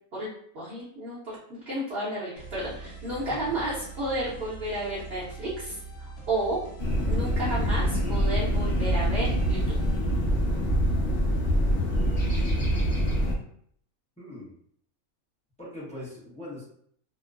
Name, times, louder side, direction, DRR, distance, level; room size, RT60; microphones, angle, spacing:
voice 1, 0.5-1.4 1.7-6.6 7.1-9.7, right 1 dB, 55° right, -8 dB, 0.8 m, -32 dB
sound 1, 2.4-10.0, right 3 dB, 65° left, 1.0 m, -43 dB
sound 2, 6.8-13.3, equal, 40° left, 0.8 m, -25 dB
voice 2, 14.2-14.5 15.6-16.6, left 1 dB, 10° left, -7 dB, 0.3 m, -41 dB
2.9 x 2.0 x 2.4 m, 0.65 s
omnidirectional pair, 1.5 m